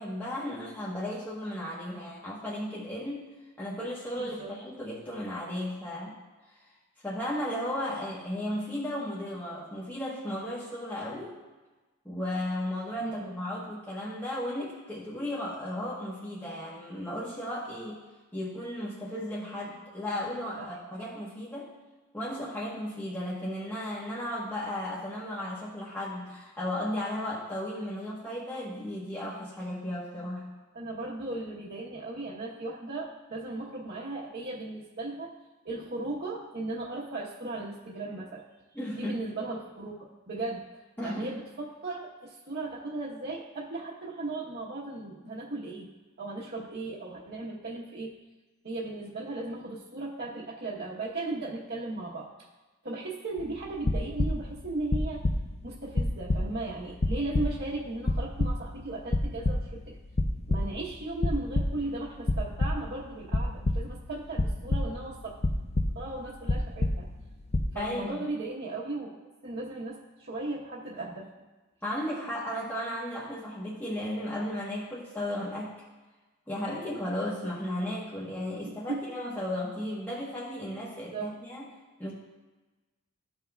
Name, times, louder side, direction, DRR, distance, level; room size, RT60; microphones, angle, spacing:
voice 1, 0.0-3.3 3.6-6.2 6.5-6.6 7.0-11.3 12.0-18.0 18.3-21.7 22.1-30.5 38.7-39.2 41.0-41.3 67.7-68.2 71.8-75.7 76.5-81.7 82.0-82.1, left 1 dB, 10° left, -7 dB, 1.0 m, -35 dB
voice 2, 4.2-4.5 13.0-13.3 20.6-20.7 30.7-35.3 35.6-38.4 38.9-40.6 41.0-45.9 46.2-48.1 48.6-52.3 52.8-55.2 55.6-60.0 60.5-65.4 65.9-67.1 67.7-69.1 69.4-71.3 78.6-79.0 81.1-81.3, right 2 dB, 50° right, -7 dB, 1.0 m, -36 dB
sound 1, 53.4-54.5 54.9-55.7 55.9-57.7 58.0-58.8 59.1-59.9 60.2-60.8 61.2-61.9 62.2-63.0 63.3-64.0 64.4-65.1 65.4-66.2 66.4-67.2 67.5-67.8, left 2 dB, 30° left, 0.5 m, -28 dB
13.5 x 5.6 x 2.3 m, 1.2 s
head